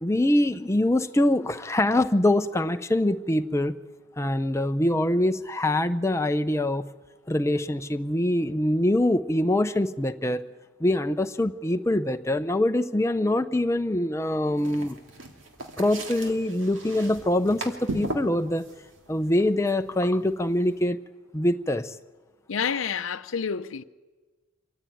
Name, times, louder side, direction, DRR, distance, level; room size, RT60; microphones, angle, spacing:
voice 1, 0.0-3.8 4.2-6.9 7.3-10.5 10.8-15.0 15.8-18.6 19.1-21.0 21.3-21.9, left 1 dB, 15° left, 0.7 m, -24 dB
sound 1, 14.6-20.8, right 2 dB, 75° right, 2.3 m, -38 dB
voice 2, 22.5-23.8, left 6 dB, 80° left, 0.6 m, -29 dB
25.0 x 14.5 x 9.3 m
head